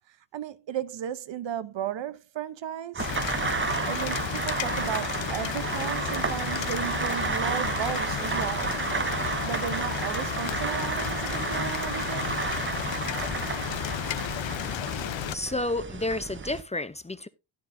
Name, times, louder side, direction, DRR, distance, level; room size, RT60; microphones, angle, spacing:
voice 1, 0.1-3.1 3.9-8.8 9.4-12.5, right 10 dB, 80° right, 0.8 m, -35 dB
sound 1, 2.9-16.6, right 5 dB, 25° right, 0.7 m, -32 dB
Rain, 3.0-15.3, left 11 dB, 85° left, 0.9 m, -33 dB
voice 2, 15.3-17.3, left 2 dB, 15° left, 0.6 m, -30 dB
12.0 x 10.0 x 2.6 m
cardioid pair, 80°, 44 cm